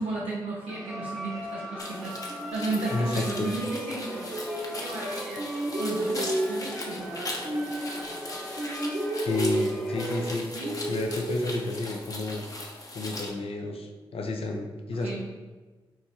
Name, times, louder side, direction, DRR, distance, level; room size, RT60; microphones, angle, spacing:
voice 1, 0.0-5.4 5.8-7.7 8.1-8.4 10.5-10.8 15.0-15.2, right 3 dB, 85° right, -5 dB, 0.6 m, -34 dB
sound 1, 0.7-10.4, equal, 5° left, 0.9 m, -39 dB
sound 2, 1.8-13.3, left 2 dB, 35° left, 0.8 m, -39 dB
sound 3, 2.3-5.1 5.4-8.3 8.6-12.1, right 1 dB, 30° right, 0.7 m, -33 dB
voice 2, 2.9-3.5 9.2-10.4 10.9-12.4 12.9-15.2, left 2 dB, 70° left, 2 dB, 0.6 m, -31 dB
4.5 x 2.3 x 4.3 m, 1.3 s
supercardioid pair, 40°, 10 cm